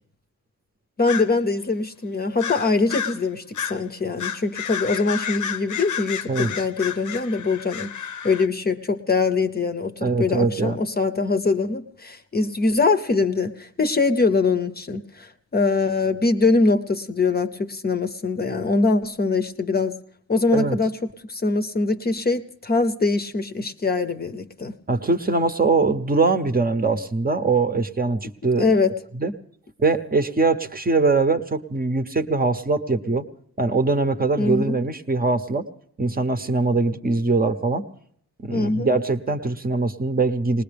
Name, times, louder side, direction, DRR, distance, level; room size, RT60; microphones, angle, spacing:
voice 1, 1.0-7.9 8.2-20.0 20.3-21.0 21.3-24.8 28.6-29.0 34.4-34.8 38.5-39.0, left 3 dB, 30° left, 8 dB, 0.7 m, -23 dB
sound 1, 1.1-1.3 2.4-3.2 3.5-3.8 4.2-8.5, left 8 dB, 65° left, 0.7 m, -31 dB
voice 2, 10.0-10.8 20.5-20.8 24.9-28.7 29.2-29.3 29.8-33.3 33.6-35.6 36.0-37.8 38.4-40.6, right 3 dB, 30° right, 8 dB, 0.8 m, -22 dB
20.0 x 20.0 x 3.4 m, 0.65 s
wide cardioid pair, 165°, 32 cm